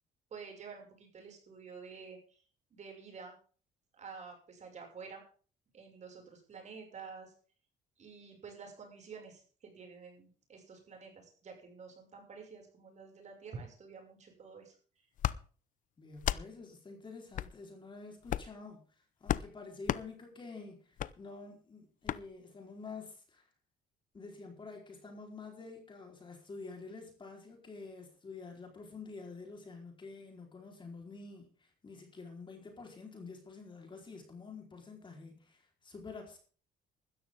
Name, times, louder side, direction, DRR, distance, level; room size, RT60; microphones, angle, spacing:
voice 1, 0.3-2.4 2.7-3.3 4.0-5.2 5.7-7.3 8.0-14.7, right 5 dB, 45° right, 2 dB, 6.5 m, -49 dB
sound 1, 15.2-15.4 16.2-16.5 17.3-17.5 18.2-18.6 19.3-19.5 19.9-20.0 21.0-21.1 22.1-22.2, left 11 dB, 50° left, 0.6 m, -33 dB
voice 2, 16.0-23.5 24.1-36.4, left 4 dB, 30° left, 2 dB, 4.4 m, -48 dB
15.5 x 13.5 x 3.8 m, 0.40 s
cardioid pair, 110°, 17 cm